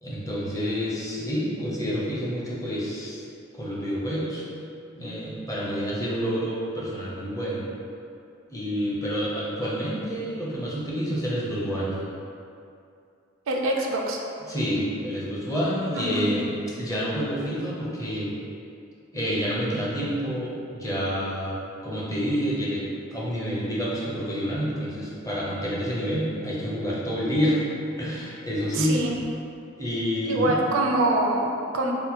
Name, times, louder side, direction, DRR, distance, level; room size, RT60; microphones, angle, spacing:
voice 1, 0.0-3.2 3.5-4.4 5.0-7.6 8.5-12.0 14.5-18.4 19.1-21.6 21.8-22.8 23.1-27.6 28.0-29.0 29.8-30.6, equal, 15° left, -7 dB, 0.6 m, -28 dB
voice 2, 13.5-14.2 15.9-16.3 28.7-29.1 30.3-31.9, right 2 dB, 85° right, 0 dB, 0.4 m, -25 dB
2.8 x 2.1 x 4.1 m, 2.5 s
head